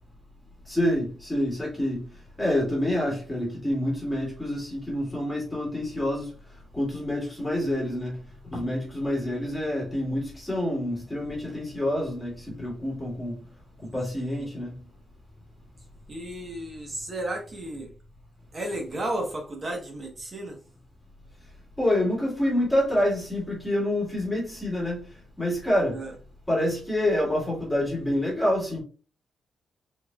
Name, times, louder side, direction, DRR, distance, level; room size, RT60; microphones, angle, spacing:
voice 1, 0.7-2.0 2.4-6.3 6.7-8.2 8.5-13.4 13.9-14.8 21.8-25.0 25.4-26.0 26.5-28.8, left 1 dB, 5° left, 2.4 m, -27 dB
voice 2, 14.1-14.5 16.1-17.9 18.5-20.6 25.9-26.1, right 1 dB, 25° right, 1.2 m, -33 dB
4.5 x 4.3 x 2.4 m
wide cardioid pair, 180°, 0 cm